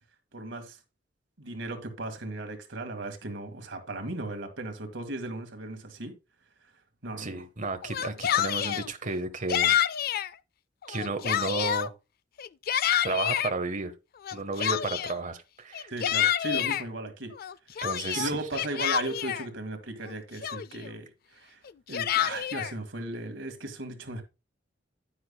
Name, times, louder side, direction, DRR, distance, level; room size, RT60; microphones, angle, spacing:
voice 1, 0.3-0.8 1.4-6.1 7.0-7.4 15.9-17.3 18.2-21.6 21.9-24.2, right 2 dB, 85° right, 1.9 m, -36 dB
voice 2, 7.2-9.8 10.9-11.9 13.0-13.9 14.3-15.9 17.8-18.3, right 3 dB, 45° right, 1.2 m, -32 dB
Yell, 7.8-8.9 9.5-10.3 10.8-11.9 12.4-13.5 14.2-15.2 15.7-16.8 17.4-19.5 20.0-20.1 20.4-20.9 21.7-22.7, left 10 dB, 55° left, 0.3 m, -28 dB
10.0 x 9.5 x 2.2 m
head